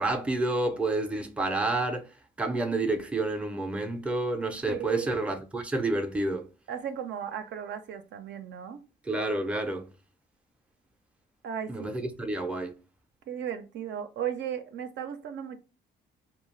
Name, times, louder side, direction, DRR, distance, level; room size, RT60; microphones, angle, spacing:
voice 1, 0.0-2.1 2.4-6.4 9.1-9.8 11.7-12.7, right 2 dB, 5° right, 0.4 m, -29 dB
voice 2, 4.7-5.1 6.7-8.8 11.4-12.0 13.3-15.6, right 9 dB, 65° right, 0.4 m, -35 dB
2.3 x 2.1 x 3.1 m
cardioid pair, 90°, 20 cm